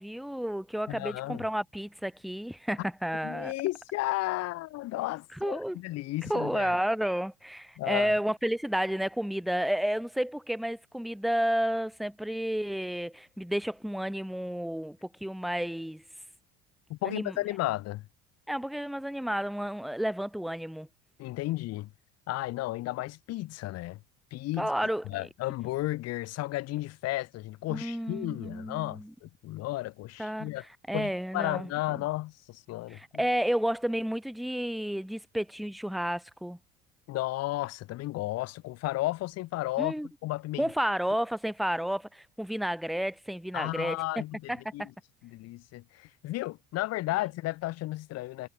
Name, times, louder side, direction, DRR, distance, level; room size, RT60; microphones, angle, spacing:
voice 1, 0.0-3.5 5.4-5.8 6.2-16.0 17.0-17.3 18.5-20.9 24.6-25.0 27.7-29.1 30.2-30.5 30.9-32.0 32.9-36.6 39.8-40.1 40.6-44.0 44.5-44.9, equal, ahead, 0.5 m, -31 dB
voice 2, 0.9-1.4 3.2-6.8 7.8-8.2 16.9-18.1 21.2-21.9 22.3-24.0 24.3-24.7 25.0-30.6 30.9-33.2 37.1-39.9 40.2-40.7 43.5-44.8 45.2-48.5, left 17 dB, 55° left, 1.1 m, -33 dB
cardioid pair, 140°, 31 cm